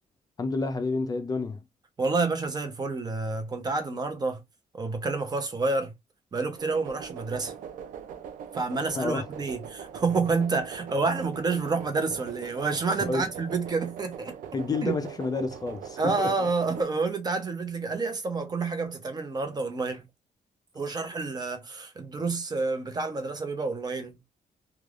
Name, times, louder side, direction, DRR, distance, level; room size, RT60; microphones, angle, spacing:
voice 1, 0.4-1.6 9.0-9.3 13.1-13.3 14.5-16.5, left 3 dB, 30° left, 0.5 m, -30 dB
voice 2, 2.0-4.4 4.7-5.9 6.3-7.5 8.5-14.4 14.8-15.0 16.0-20.1 20.7-24.2, right 3 dB, 30° right, 0.7 m, -29 dB
sound 1, 6.6-16.8, right 8 dB, 90° right, 0.4 m, -42 dB
3.2 x 2.3 x 2.4 m
cardioid pair, 125°, 13 cm